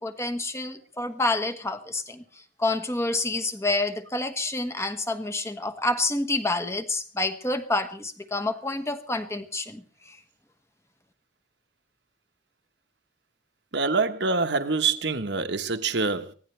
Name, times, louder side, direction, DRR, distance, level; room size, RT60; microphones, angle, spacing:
voice 1, 0.0-2.2 2.6-9.8 10.1-10.2, left 2 dB, 15° left, 1.3 m, -28 dB
voice 2, 13.7-16.3, right 4 dB, 60° right, 1.2 m, -25 dB
23.5 x 16.5 x 3.3 m
head